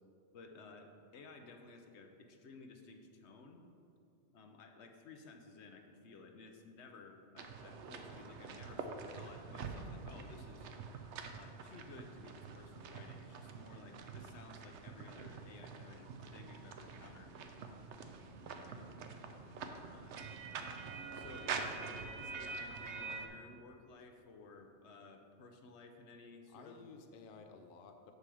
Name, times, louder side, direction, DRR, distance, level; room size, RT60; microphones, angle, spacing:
voice 1, 0.3-3.6 4.3-8.9 9.2-10.7 11.3-17.3 19.9-20.1 21.1-26.8, left 3 dB, 75° left, 5 dB, 1.0 m, -55 dB
sound 1, 7.4-23.3, right 5 dB, 80° right, 0.9 m, -46 dB
voice 2, 19.4-19.8 26.5-28.1, left 4 dB, 55° left, 5 dB, 0.7 m, -55 dB
Acoustic guitar, 20.8-24.0, right 1 dB, 45° right, 1.2 m, -59 dB
6.7 x 4.8 x 6.9 m, 2.5 s
omnidirectional pair, 1.2 m